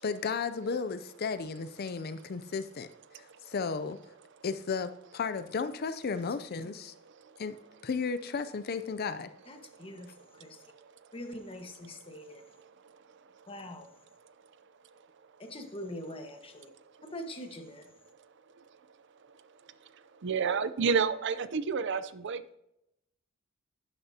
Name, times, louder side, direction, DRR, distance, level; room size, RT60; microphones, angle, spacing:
voice 1, 0.0-2.9 3.1-4.0 4.4-6.9 7.4-7.6 7.8-9.3, left 5 dB, 50° left, 12 dB, 0.5 m, -34 dB
voice 2, 0.7-1.6 2.9-4.9 5.7-6.0 6.4-6.5 7.1-7.5 7.8-8.1 8.5-8.7 9.1-9.2 11.3-12.4 13.4-13.5 14.2-14.3 15.9-16.0 17.0-17.1 19.3-19.5 19.9-22.6, right 5 dB, 60° right, 13 dB, 0.5 m, -35 dB
voice 3, 9.5-10.6 11.1-12.4 13.5-13.9 15.4-16.7 17.0-17.9, left 1 dB, 25° left, 5 dB, 1.3 m, -43 dB
11.5 x 10.0 x 2.8 m, 0.83 s
head